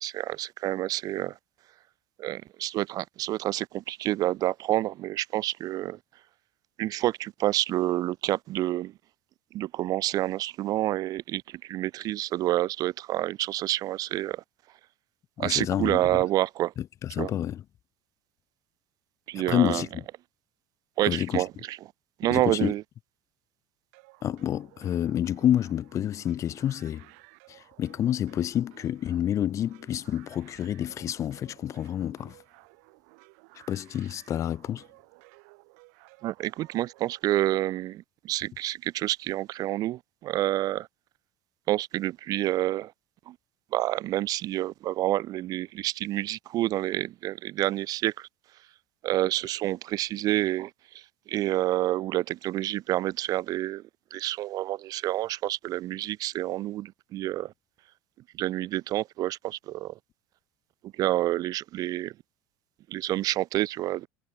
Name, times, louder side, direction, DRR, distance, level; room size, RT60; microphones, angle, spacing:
voice 1, 0.0-1.3 2.2-6.0 6.8-8.9 9.5-14.4 15.4-16.7 17.2-17.3 19.3-19.8 21.0-21.8 22.2-22.8 36.2-40.9 41.7-42.9 43.3-43.4 43.7-48.3 49.0-51.0 51.3-53.8 54.1-57.5 58.4-59.9 61.0-62.1 62.9-64.1, right 15 dB, 50° right, 0.5 m, -28 dB
voice 2, 15.4-16.2 16.8-17.6 19.4-20.0 21.1-21.4 22.3-22.7 24.2-27.1 27.5-32.4 33.7-34.8, left 10 dB, 40° left, 0.5 m, -28 dB
sound 1, 23.9-37.8, right 36 dB, 75° right, 3.1 m, -56 dB
supercardioid pair, 110°, 8 cm